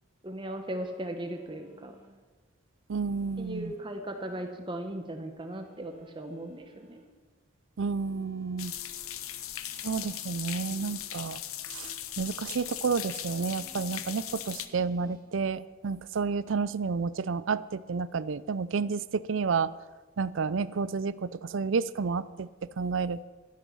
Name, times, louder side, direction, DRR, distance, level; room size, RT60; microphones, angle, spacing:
voice 1, 0.2-1.9 3.4-7.0, right 1 dB, 25° right, 5 dB, 0.9 m, -37 dB
sound 1, 0.8-2.1 3.0-4.5 5.4-7.0 7.8-9.2 10.6-11.0 11.6-11.9 12.6-13.0 13.5-14.0 14.5-15.2, left 1 dB, 20° left, 2.8 m, -58 dB
voice 2, 2.9-3.7 7.8-8.7 9.8-11.4 11.7-11.9 12.2-19.7 20.2-22.5 22.8-23.3, right 5 dB, 65° right, 17 dB, 0.4 m, -30 dB
sound 2, 8.6-14.7, left 11 dB, 85° left, 0.8 m, -38 dB
12.5 x 11.0 x 5.5 m, 1.3 s
head